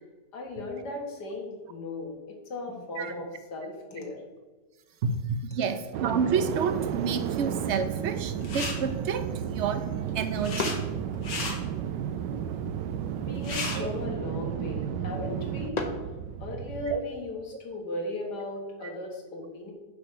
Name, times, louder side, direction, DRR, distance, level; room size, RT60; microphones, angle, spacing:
voice 1, 0.3-2.2 2.5-4.2 13.2-15.8 16.4-19.7, left 2 dB, 70° left, 1 dB, 2.2 m, -36 dB
voice 2, 5.0-9.9 10.1-10.8 13.7-13.9 16.9-17.0, right 6 dB, 60° right, 9 dB, 0.8 m, -29 dB
sound 1, 5.9-17.0, right 9 dB, 90° right, 1.3 m, -33 dB
sound 2, 6.8-16.9, left 3 dB, 40° left, 0.6 m, -42 dB
sound 3, 8.4-8.7 9.9-10.7 11.1-11.5 13.1-13.2 13.3-13.8, left 4 dB, 85° left, 2.2 m, -34 dB
6.8 x 5.7 x 6.5 m, 1.3 s
omnidirectional pair, 1.8 m